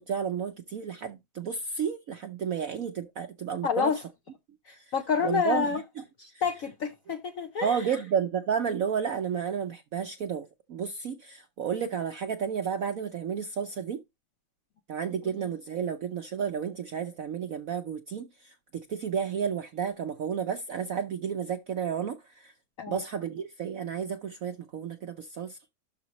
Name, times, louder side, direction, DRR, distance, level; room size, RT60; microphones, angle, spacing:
voice 1, 0.0-3.9 4.7-4.9 5.2-6.0 6.3-6.4 7.6-14.0 14.9-22.5 22.9-25.6, right 7 dB, 65° right, 0.8 m, -32 dB
voice 2, 3.6-4.0 4.7-5.8 6.2-7.8 22.8-23.0, left 6 dB, 65° left, 0.8 m, -28 dB
12.0 x 5.1 x 3.0 m
omnidirectional pair, 2.2 m